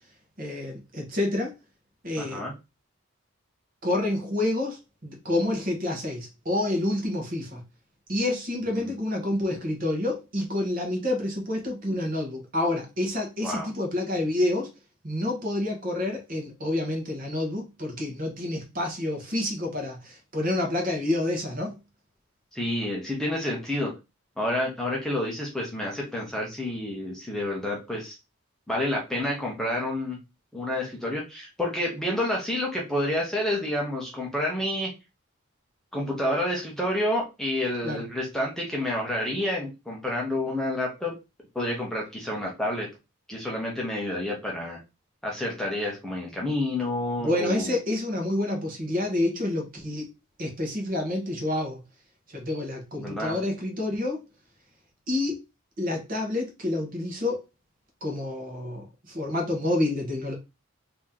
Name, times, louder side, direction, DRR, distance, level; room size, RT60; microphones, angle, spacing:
voice 1, 0.4-1.5 2.0-2.4 3.8-7.6 8.1-14.7 15.0-21.8 37.8-38.0 47.2-50.1 50.4-51.8 52.3-54.2 55.1-55.3 55.8-57.4 58.0-60.3, left 1 dB, 40° right, 1.1 m, -28 dB
voice 2, 2.2-2.5 8.8-8.9 13.4-13.7 22.5-23.9 24.4-28.2 28.7-30.2 30.5-34.9 35.9-41.1 41.5-42.9 43.3-44.8 45.2-47.8 53.0-53.3, left 1 dB, ahead, 0.9 m, -29 dB
3.0 x 2.8 x 3.7 m
head